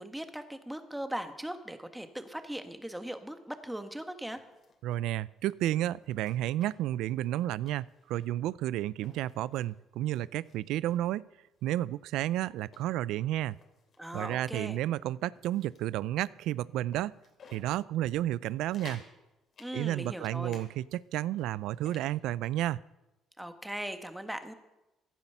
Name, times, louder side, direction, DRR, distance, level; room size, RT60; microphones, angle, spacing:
voice 1, 0.0-4.4 14.0-14.8 19.6-20.6 23.4-24.5, right 1 dB, 5° right, 8 dB, 1.4 m, -39 dB
sound 1, 4.3-5.0 5.4-5.5 6.0-7.0 7.2-7.4 7.6-8.4 8.9-9.7 10.1-11.0 11.6-11.7 12.1-14.4 14.8-15.0 15.4-16.0 16.4-16.5 16.9-17.7 18.1-18.2 18.5-19.1 19.5-20.7 21.0-22.1, left 4 dB, 50° left, 2.9 m, -55 dB
voice 2, 4.8-11.2 11.6-13.6 14.1-17.1 17.5-19.0 19.7-22.8, right 13 dB, 80° right, 21 dB, 0.4 m, -31 dB
16.0 x 10.5 x 5.6 m, 0.98 s
cardioid pair, 95°, 0 cm